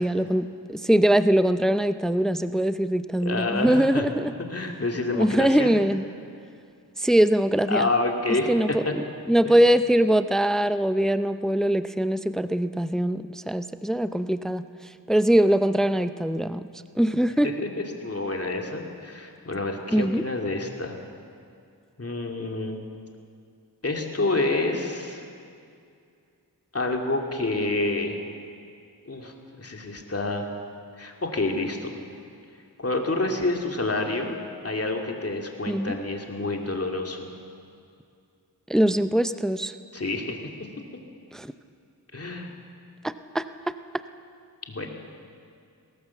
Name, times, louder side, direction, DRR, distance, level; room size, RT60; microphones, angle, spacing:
voice 1, 0.0-4.3 5.1-6.0 7.0-7.9 8.5-14.6 15.1-16.7 17.0-17.5 19.9-20.2 35.7-36.0 38.7-39.7 41.3-41.5 43.0-43.7, right 1 dB, ahead, 12 dB, 0.6 m, -22 dB
voice 2, 3.2-4.0 4.5-5.7 7.7-8.9 9.4-9.6 17.4-21.0 22.0-22.8 23.8-25.3 26.7-28.2 29.0-30.5 31.0-32.0 32.8-34.3 34.6-37.3 39.9-40.4 42.1-42.5 44.7-44.9, left 2 dB, 40° left, 2 dB, 2.6 m, -28 dB
21.5 x 17.0 x 7.1 m, 2.4 s
wide cardioid pair, 80°, 38 cm